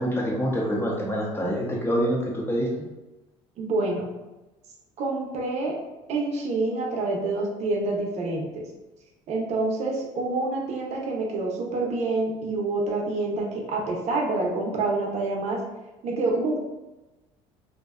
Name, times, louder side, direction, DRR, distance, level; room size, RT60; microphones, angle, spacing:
voice 1, 0.0-2.7, equal, 15° left, -2 dB, 0.8 m, -26 dB
voice 2, 3.6-4.1 5.0-5.8 6.1-8.6 9.3-15.6 16.0-16.6, right 2 dB, 55° right, 0 dB, 0.7 m, -27 dB
2.6 x 2.2 x 2.3 m, 1.0 s
supercardioid pair, 95°, 14 cm